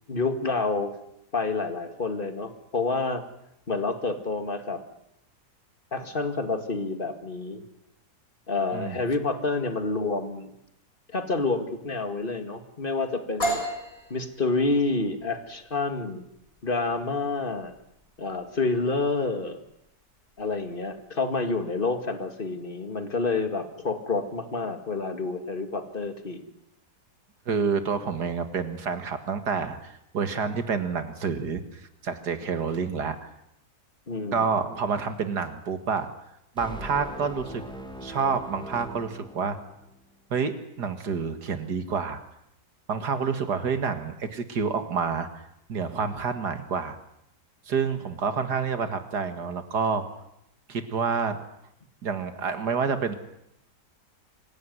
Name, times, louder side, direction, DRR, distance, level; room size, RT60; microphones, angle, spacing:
voice 1, 0.1-1.0 1.3-3.2 3.7-4.8 5.9-7.6 8.5-10.5 11.1-13.6 14.1-16.2 16.6-17.7 18.2-19.6 20.4-26.5 34.1-34.5, left 3 dB, 35° left, 7 dB, 2.3 m, -28 dB
sound 1, 13.4-21.0, right 1 dB, 55° left, 5.6 m, -36 dB
voice 2, 27.5-33.3 34.3-36.1 36.6-37.6 38.0-39.6 40.3-42.2 42.9-45.4 45.7-47.0 47.7-50.0 50.7-51.4 52.0-53.1, right 5 dB, 90° right, 9 dB, 2.4 m, -28 dB
sound 2, 36.6-40.0, equal, 5° left, 2.1 m, -41 dB
25.0 x 16.0 x 9.6 m, 0.80 s
omnidirectional pair, 1.7 m